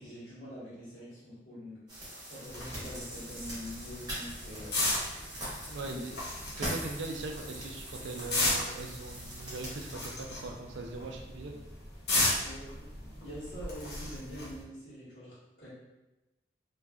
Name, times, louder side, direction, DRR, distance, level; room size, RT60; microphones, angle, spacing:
voice 1, 0.0-1.8 2.3-4.7 5.6-6.1 12.4-15.7, equal, 80° left, -10 dB, 1.3 m, -45 dB
sound 1, 1.9-9.9, right 1 dB, 20° right, 0.9 m, -42 dB
sound 2, 2.5-14.6, left 2 dB, 60° left, 0.7 m, -35 dB
voice 2, 5.7-6.1 6.6-11.6, right 3 dB, 75° right, 3 dB, 0.4 m, -40 dB
2.5 x 2.3 x 2.3 m, 1.0 s
head